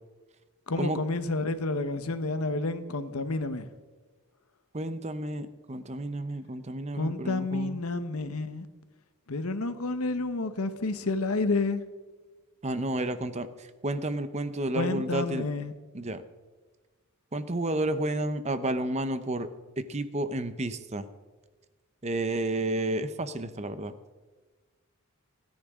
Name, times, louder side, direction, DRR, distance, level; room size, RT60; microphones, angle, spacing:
voice 1, 0.7-3.7 6.9-8.7 9.3-11.8 14.7-15.7, left 3 dB, 80° left, 1.1 m, -30 dB
voice 2, 4.7-7.8 12.6-13.5 13.8-15.4 15.9-16.2 17.3-19.5 19.8-21.0 22.0-23.9, right 1 dB, 30° right, 0.7 m, -31 dB
27.0 x 10.0 x 3.7 m
head